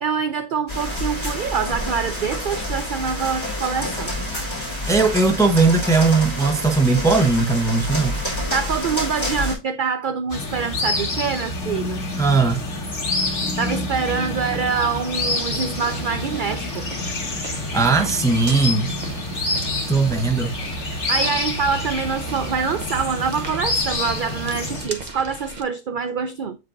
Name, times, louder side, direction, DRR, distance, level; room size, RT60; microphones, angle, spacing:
voice 1, 0.0-4.1 8.3-12.0 13.6-16.9 21.1-26.6, right 6 dB, 75° right, 0.4 m, -25 dB
sound 1, 0.7-9.6, left 1 dB, 20° left, 2.9 m, -28 dB
voice 2, 4.9-8.2 12.2-12.7 17.7-18.9 19.9-20.6, right 4 dB, 5° left, 0.4 m, -18 dB
sound 2, 10.3-24.9, left 2 dB, 60° left, 1.9 m, -27 dB
sound 3, 15.3-25.6, right 3 dB, 40° right, 0.9 m, -38 dB
7.6 x 5.1 x 2.5 m
omnidirectional pair, 1.4 m